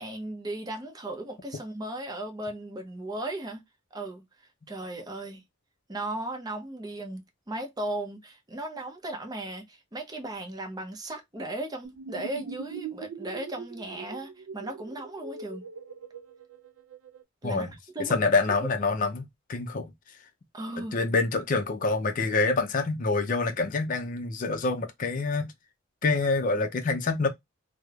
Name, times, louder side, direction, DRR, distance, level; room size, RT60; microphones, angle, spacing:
voice 1, 0.0-3.6 3.9-4.2 4.7-5.4 5.9-7.2 7.5-15.6 17.4-18.1 18.5-18.6 20.5-21.0, right 1 dB, 20° right, 0.6 m, -36 dB
sound 1, 11.8-17.2, right 5 dB, 80° right, 0.4 m, -42 dB
voice 2, 18.0-19.9 20.8-25.5 26.0-27.3, left 3 dB, 40° left, 0.4 m, -26 dB
3.0 x 2.0 x 2.2 m
head